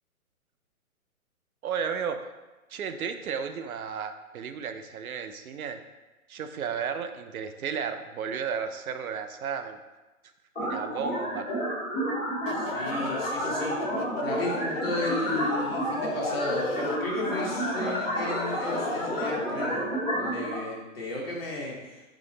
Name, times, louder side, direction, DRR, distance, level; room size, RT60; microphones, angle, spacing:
voice 1, 1.6-2.3 2.7-5.8 6.3-9.8 10.6-11.5, right 7 dB, 75° right, 8 dB, 0.5 m, -33 dB
sound 1, 10.5-20.5, equal, ahead, 0.7 m, -30 dB
sound 2, 12.4-19.3, left 6 dB, 60° left, 0.6 m, -41 dB
voice 2, 12.5-13.8 14.2-22.0, left 2 dB, 45° left, -3 dB, 1.1 m, -34 dB
3.9 x 3.0 x 3.8 m, 1.1 s
hypercardioid pair, 170°, 43 cm